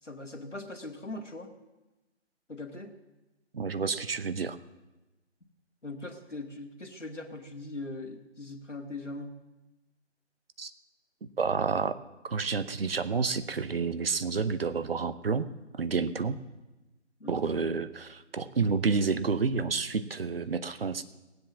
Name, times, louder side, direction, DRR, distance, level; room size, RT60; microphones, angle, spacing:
voice 1, 0.0-1.5 2.5-2.9 5.8-9.4 17.2-17.7, left 2 dB, 90° left, 5 dB, 1.9 m, -41 dB
voice 2, 3.5-4.6 10.6-10.7 11.4-12.0 12.2-15.5 15.8-16.4 17.3-21.0, right 5 dB, 55° right, 13 dB, 0.8 m, -29 dB
17.0 x 7.9 x 7.3 m, 1.0 s
figure-of-eight pair, 145°, 35 cm